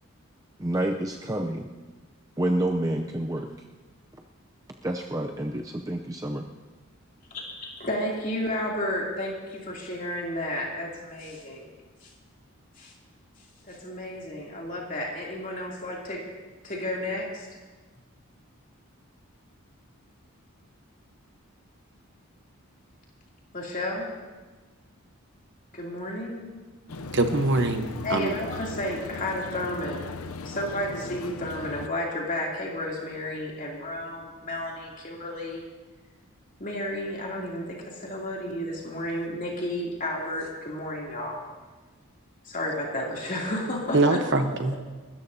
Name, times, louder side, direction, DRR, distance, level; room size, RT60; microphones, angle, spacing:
voice 1, 0.6-1.7 2.4-3.5 4.8-6.5, right 1 dB, 15° right, 3 dB, 0.5 m, -28 dB
voice 2, 7.3-11.7 12.0-12.1 12.8-12.9 13.6-16.2 16.6-17.5 23.5-24.1 25.7-26.5 28.0-30.1 30.4-35.7 36.6-41.4 42.4-44.2, left 1 dB, 35° left, -3 dB, 2.9 m, -32 dB
sound 1, 26.9-31.9, left 3 dB, 75° left, 0.6 m, -38 dB
voice 3, 27.1-28.3 43.9-44.8, right 2 dB, 55° right, 6 dB, 1.0 m, -23 dB
29.5 x 13.5 x 2.8 m, 1.3 s
head